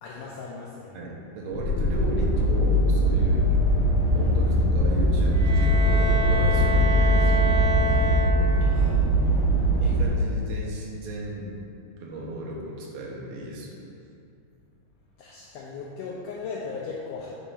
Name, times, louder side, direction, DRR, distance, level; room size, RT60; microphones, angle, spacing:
voice 1, 0.0-1.0 8.7-9.1 15.2-17.3, left 4 dB, 90° left, -4 dB, 1.8 m, -37 dB
voice 2, 0.9-3.5 4.1-7.7 9.8-11.5 12.0-13.7, right 1 dB, 85° right, -2 dB, 2.8 m, -35 dB
sound 1, 1.5-10.0, equal, 60° left, 1.4 m, -21 dB
Bowed string instrument, 5.3-8.8, left 1 dB, 70° right, 1.4 m, -29 dB
9.0 x 4.1 x 3.7 m, 2.5 s
omnidirectional pair, 4.3 m